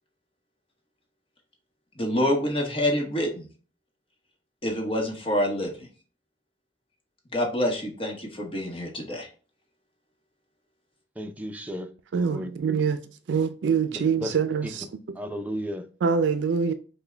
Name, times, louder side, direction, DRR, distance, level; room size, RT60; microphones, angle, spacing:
voice 1, 2.0-3.5 4.6-5.9 7.3-9.3, left 1 dB, 30° left, 1.0 m, -27 dB
voice 2, 11.2-12.5 14.2-14.3 15.2-15.9, equal, 10° right, 0.4 m, -34 dB
voice 3, 12.1-13.0 13.3-14.9 16.0-16.7, right 6 dB, 75° right, 0.4 m, -24 dB
5.8 x 2.2 x 3.3 m
head